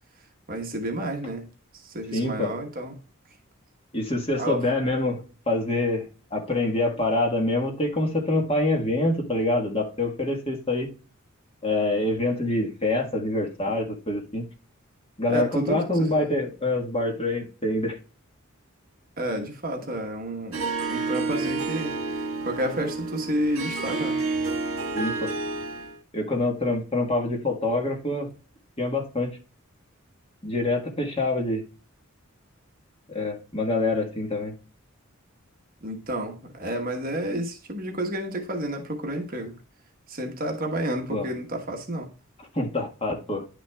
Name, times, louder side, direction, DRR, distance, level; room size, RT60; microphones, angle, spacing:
voice 1, 0.5-1.4 1.8-3.0 4.4-4.6 15.3-16.1 19.2-20.6 20.9-21.9 22.4-24.2 35.8-39.5 40.1-42.1, right 1 dB, 40° right, 1.3 m, -30 dB
voice 2, 2.1-2.5 3.9-10.9 11.6-14.5 15.2-18.0 24.9-25.3 26.1-28.3 28.8-29.4 30.4-31.6 33.1-34.5 37.3-37.4 41.1-41.3 42.5-43.5, left 2 dB, 25° left, 1.5 m, -26 dB
Harp, 20.5-26.0, right 3 dB, 70° right, 1.6 m, -29 dB
10.5 x 5.9 x 2.3 m
head